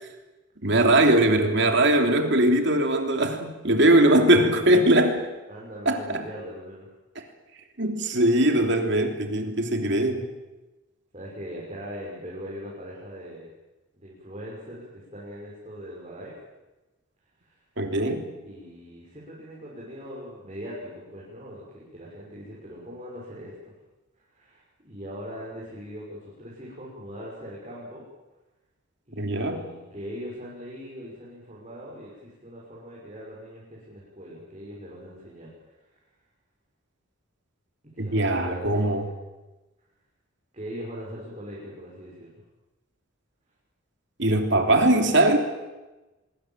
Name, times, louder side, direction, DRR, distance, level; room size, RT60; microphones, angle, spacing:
voice 1, 0.6-5.2 5.8-6.2 7.8-10.3 17.8-18.2 29.2-29.6 38.0-39.0 44.2-45.4, right 1 dB, 55° right, 5 dB, 3.1 m, -21 dB
voice 2, 5.5-6.9 11.1-13.5 13.9-16.3 17.4-17.6 18.4-23.7 24.3-28.1 29.1-35.5 37.9-38.9 40.5-42.4, equal, 30° right, -5 dB, 6.3 m, -40 dB
25.0 x 22.0 x 7.6 m, 1.1 s
head